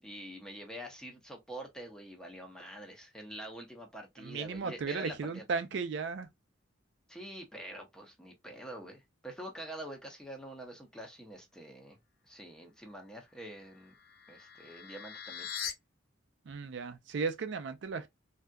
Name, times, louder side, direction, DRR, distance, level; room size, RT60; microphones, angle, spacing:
voice 1, 0.0-5.4 7.1-12.0 12.3-13.9 14.3-15.5, right 1 dB, 5° left, 0.6 m, -46 dB
voice 2, 4.2-6.3 16.5-18.1, right 5 dB, 60° right, 0.4 m, -35 dB
sound 1, 13.5-15.7, left 8 dB, 50° left, 0.5 m, -42 dB
3.4 x 2.7 x 2.2 m
head